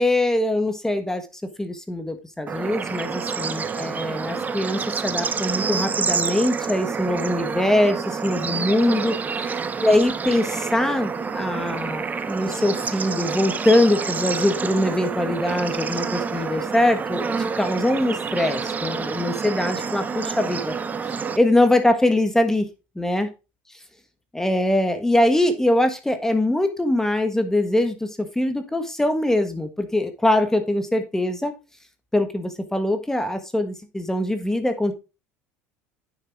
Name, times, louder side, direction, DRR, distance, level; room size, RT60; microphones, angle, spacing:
voice 1, 0.0-20.7 21.4-22.7 22.9-23.3 24.3-31.5 32.1-34.9, left 1 dB, 5° left, 8 dB, 1.4 m, -22 dB
Bird / Insect / Frog, 2.5-21.4, right 5 dB, 25° right, 1.1 m, -28 dB
9.3 x 6.8 x 3.5 m, 0.28 s
supercardioid pair, 90°, 6 cm